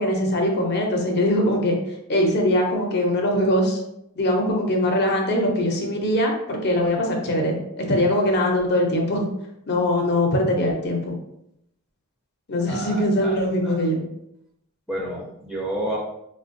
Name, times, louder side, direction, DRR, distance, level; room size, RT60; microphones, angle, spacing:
voice 1, 0.0-1.8 2.1-3.8 4.2-9.2 9.7-11.1 12.5-14.0, left 1 dB, 50° left, 1 dB, 0.7 m, -22 dB
voice 2, 12.7-13.4 13.6-13.8 14.9-16.0, right 1 dB, ahead, -5 dB, 0.6 m, -30 dB
4.2 x 2.2 x 2.5 m, 0.80 s
head